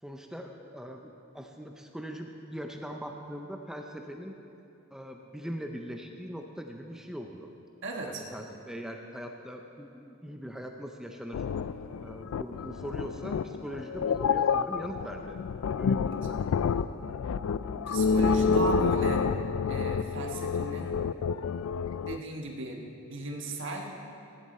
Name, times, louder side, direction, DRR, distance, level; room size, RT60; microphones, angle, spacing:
voice 1, 0.0-4.3 4.9-7.5 8.0-11.4 12.0-15.4 15.6-16.5, equal, 5° right, 3 dB, 0.5 m, -41 dB
voice 2, 7.8-8.2 16.0-16.2 17.9-19.3 19.7-21.0 22.1-24.0, right 2 dB, 55° right, 1 dB, 1.4 m, -37 dB
sound 1, 11.3-22.2, left 5 dB, 70° left, 0.3 m, -28 dB
15.0 x 10.5 x 4.3 m, 2.7 s
head